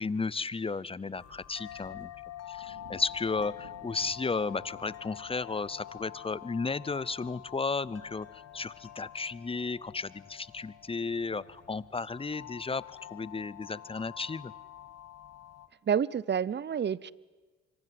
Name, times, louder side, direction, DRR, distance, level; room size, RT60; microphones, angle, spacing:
voice 1, 0.0-2.1 2.5-14.5, left 4 dB, 20° left, 21 dB, 0.7 m, -34 dB
sound 1, 1.2-15.7, left 13 dB, 55° left, 1.3 m, -47 dB
sound 2, 2.6-13.9 14.3-14.8, right 7 dB, 75° right, 2.8 m, -60 dB
voice 2, 15.9-17.1, right 8 dB, 35° right, 23 dB, 0.7 m, -29 dB
25.0 x 24.0 x 7.7 m, 1.3 s
cardioid pair, 90°, 30 cm